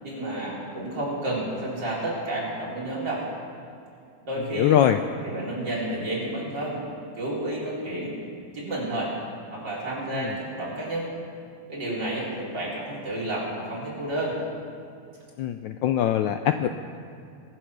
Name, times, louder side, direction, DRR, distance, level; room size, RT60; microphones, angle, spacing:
voice 1, 0.0-3.2 4.2-4.8 5.2-6.8 7.2-8.1 8.5-9.1 9.5-11.1 11.7-14.4, right 1 dB, 55° right, -7 dB, 4.8 m, -30 dB
voice 2, 4.5-5.0 10.1-10.3 15.4-16.7, left 11 dB, 75° left, 8 dB, 1.1 m, -22 dB
23.0 x 7.8 x 6.1 m, 2.5 s
omnidirectional pair, 2.4 m